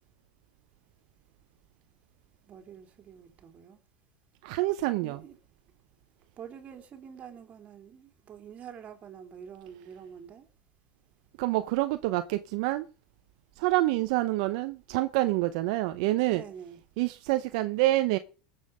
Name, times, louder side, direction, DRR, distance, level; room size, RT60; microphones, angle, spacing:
voice 1, 2.5-3.8 5.0-5.3 6.4-10.5 16.3-16.8, right 8 dB, 35° right, 3.0 m, -46 dB
voice 2, 4.4-5.2 11.4-12.9 13.6-16.4 17.0-18.2, right 17 dB, 65° right, 0.8 m, -27 dB
19.5 x 7.4 x 5.1 m
supercardioid pair, 115°, 4 cm